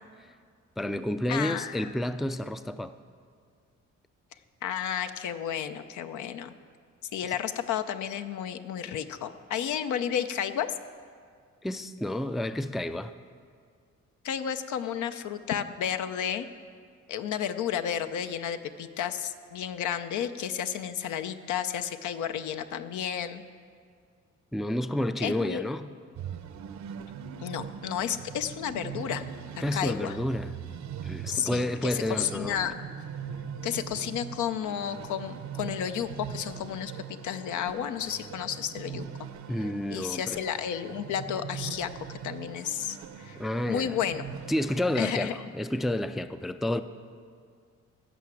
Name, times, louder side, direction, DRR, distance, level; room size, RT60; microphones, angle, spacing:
voice 1, 0.8-2.9 11.6-13.1 24.5-25.9 29.6-30.5 31.0-32.7 39.5-40.4 43.4-44.0 44.5-46.8, left 1 dB, ahead, 11 dB, 0.3 m, -30 dB
voice 2, 1.3-1.9 4.6-6.5 7.1-10.7 14.2-16.5 17.1-23.4 25.2-25.6 27.4-29.3 29.7-30.2 31.3-32.8 33.6-39.1 39.9-43.4 43.7-44.2 44.9-45.5, left 9 dB, 75° left, 10 dB, 0.7 m, -32 dB
sound 1, 26.2-45.0, right 7 dB, 70° right, 0.8 m, -41 dB
15.5 x 5.8 x 7.5 m, 2.1 s
cardioid pair, 90°, 30 cm